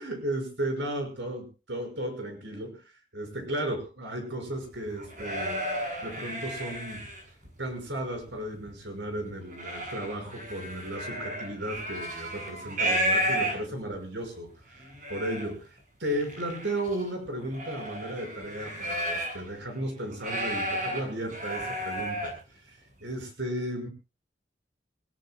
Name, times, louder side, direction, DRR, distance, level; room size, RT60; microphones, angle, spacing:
voice 1, 0.0-5.6 6.0-7.1 7.6-23.9, right 1 dB, 80° right, 4 dB, 6.1 m, -35 dB
sound 1, 4.7-7.5 8.0-8.7 9.1-14.0 14.5-14.6 14.8-15.5 16.0-19.5 19.8-22.4, equal, 45° right, 7.1 m, -33 dB
27.5 x 17.0 x 2.3 m, 0.33 s
head